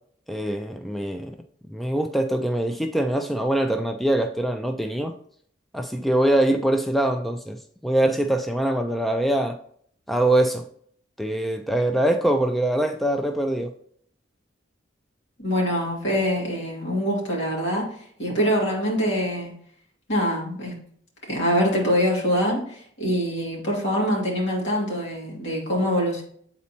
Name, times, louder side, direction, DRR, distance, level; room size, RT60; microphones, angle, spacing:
voice 1, 0.3-1.4 1.7-5.1 5.7-7.6 7.8-9.6 10.1-10.6 11.2-13.7, right 1 dB, ahead, 5 dB, 0.3 m, -23 dB
voice 2, 15.4-17.9 18.2-19.5 20.1-20.7 21.3-26.2, equal, 65° left, -3 dB, 2.3 m, -24 dB
8.3 x 4.2 x 2.8 m, 0.62 s
head